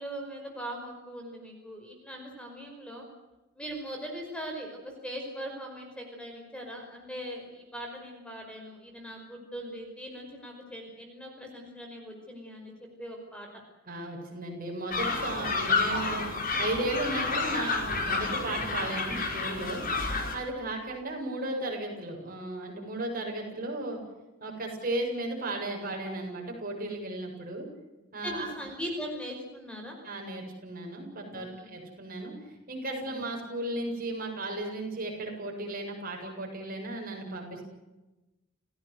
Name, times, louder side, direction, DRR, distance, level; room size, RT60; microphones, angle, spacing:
voice 1, 0.0-3.1 3.5-13.5 28.2-30.0 31.3-31.7 33.1-33.3, equal, 5° left, 2 dB, 5.3 m, -40 dB
voice 2, 13.8-16.3 16.6-19.9 20.3-24.0 24.4-27.7 28.1-28.5 30.0-32.3 32.7-37.6, right 2 dB, 45° right, 1 dB, 7.9 m, -35 dB
sound 1, 14.9-20.3, left 3 dB, 40° left, 5.6 m, -30 dB
30.0 x 17.0 x 8.1 m, 1.0 s
head